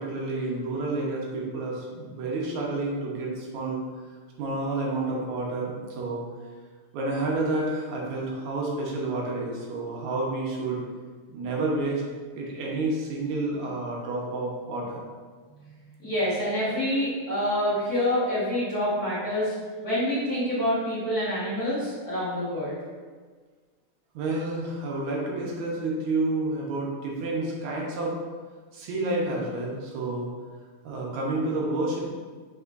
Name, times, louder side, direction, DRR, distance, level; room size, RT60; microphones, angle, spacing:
voice 1, 0.0-3.8 4.4-6.2 6.9-10.8 11.3-12.0 12.3-15.0 24.1-28.2 28.7-30.3 30.8-32.0, right 2 dB, 75° right, -3 dB, 2.3 m, -29 dB
voice 2, 16.0-19.5 19.8-22.8, left 1 dB, 40° left, -10 dB, 1.4 m, -27 dB
6.6 x 5.5 x 2.6 m, 1.5 s
omnidirectional pair, 3.4 m